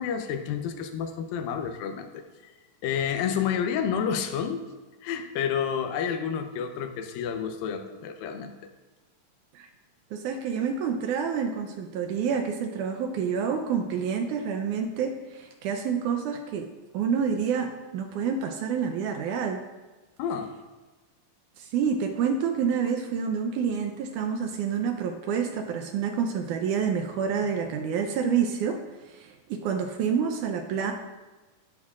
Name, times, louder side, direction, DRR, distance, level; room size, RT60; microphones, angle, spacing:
voice 1, 0.0-2.5 2.8-4.6 5.0-8.5 20.2-20.5, left 7 dB, 90° left, 7 dB, 2.5 m, -30 dB
voice 2, 10.1-16.7 16.9-19.6 21.6-28.8 29.1-30.9, right 6 dB, 80° right, 5 dB, 1.9 m, -28 dB
11.0 x 10.5 x 2.4 m, 1.2 s
omnidirectional pair, 4.0 m